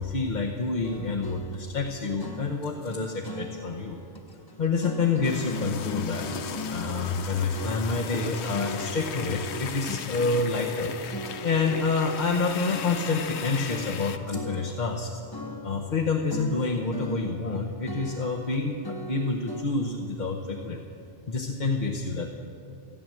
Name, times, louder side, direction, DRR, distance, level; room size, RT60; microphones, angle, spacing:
voice 1, 0.0-4.0 4.6-6.3 6.7-10.9 11.4-15.1 15.6-20.8 21.3-22.3, left 4 dB, 45° left, -1 dB, 0.9 m, -28 dB
sound 1, 0.8-12.4 12.7-13.4 13.7-16.0 16.3-17.6 17.9-19.7, left 1 dB, 25° left, 0.6 m, -39 dB
sound 2, 5.2-14.2, left 7 dB, 70° left, 0.9 m, -37 dB
15.0 x 9.3 x 7.6 m, 2.7 s
omnidirectional pair, 1.2 m